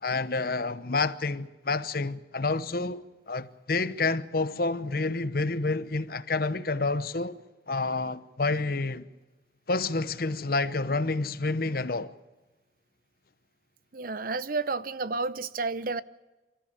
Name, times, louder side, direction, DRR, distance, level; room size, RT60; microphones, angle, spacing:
voice 1, 0.0-7.4 7.7-9.1 9.7-12.2, left 3 dB, 50° left, 0.9 m, -29 dB
voice 2, 13.9-16.0, right 3 dB, 50° right, 0.7 m, -31 dB
27.0 x 14.0 x 8.6 m
head